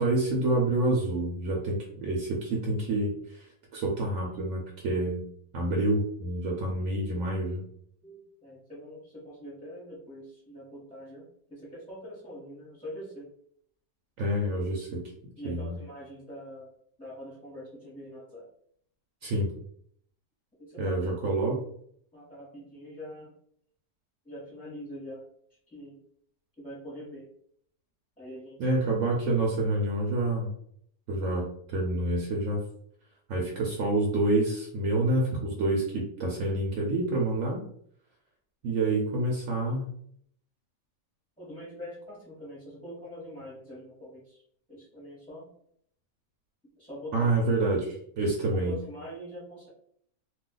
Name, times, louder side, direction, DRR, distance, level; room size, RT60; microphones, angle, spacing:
voice 1, 0.0-3.5 3.7-5.2 5.5-7.6 14.2-15.1 15.4-15.8 19.2-19.5 20.8-21.6 28.6-30.5 31.1-32.6 33.3-37.6 38.6-39.9 47.1-48.8, right 2 dB, 65° right, -1 dB, 1.0 m, -28 dB
voice 2, 8.0-13.3 15.4-16.7 17.0-18.5 20.6-21.0 22.1-23.3 24.2-25.2 25.7-26.0 26.6-27.3 28.2-28.7 41.4-44.4 44.7-45.5 46.8-47.3 48.5-49.7, equal, 5° left, -8 dB, 0.8 m, -43 dB
2.4 x 2.4 x 3.7 m, 0.66 s
omnidirectional pair, 1.6 m